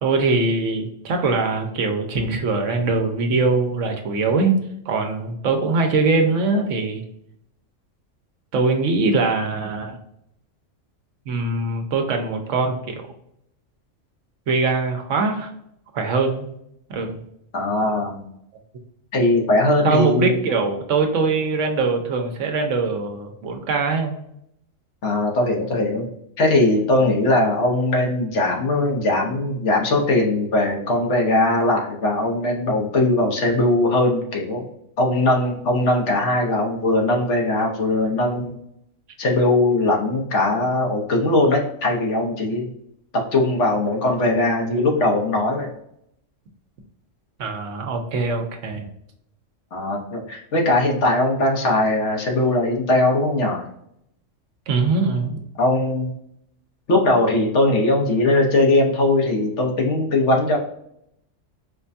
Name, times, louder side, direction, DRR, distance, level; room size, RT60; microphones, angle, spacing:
voice 1, 0.0-7.0 8.5-10.0 11.3-13.0 14.5-15.5 15.9-16.5 16.9-17.2 19.8-24.2 47.4-48.9 54.7-55.4, right 3 dB, 75° right, 4 dB, 1.0 m, -22 dB
voice 2, 17.5-18.2 19.1-20.4 25.0-26.1 26.4-34.7 35.0-38.5 39.2-42.7 43.1-45.7 49.7-53.6 55.6-56.1 56.9-60.6, left 2 dB, 65° left, 0 dB, 1.2 m, -20 dB
4.8 x 2.2 x 2.6 m, 0.75 s
omnidirectional pair, 1.3 m